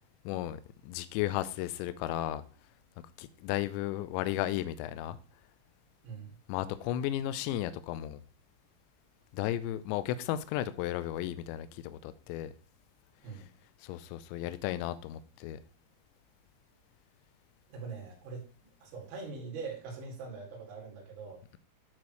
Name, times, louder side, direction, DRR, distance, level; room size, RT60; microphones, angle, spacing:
voice 1, 0.3-2.4 3.2-5.2 6.5-8.2 9.3-12.5 13.8-15.6, left 13 dB, 90° left, 2.6 m, -34 dB
voice 2, 6.0-6.4 13.2-13.5 17.7-21.4, right 4 dB, 85° right, 5.1 m, -43 dB
12.0 x 4.7 x 3.2 m
omnidirectional pair, 5.7 m